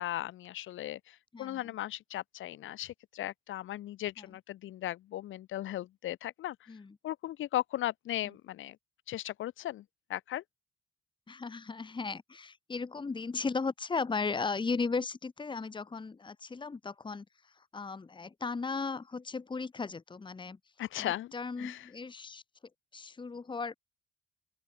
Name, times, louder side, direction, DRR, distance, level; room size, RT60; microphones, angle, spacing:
voice 1, 0.0-6.6 7.0-8.8 9.1-9.8 10.1-10.4 20.8-21.3 21.6-21.8, left 13 dB, 80° left, 2.0 m, -37 dB
voice 2, 1.3-1.7 4.2-4.4 6.7-7.0 8.2-8.4 11.3-20.6 21.0-22.4 22.9-23.7, left 4 dB, 25° left, 1.4 m, -36 dB
open air
cardioid pair, 90°, 20 cm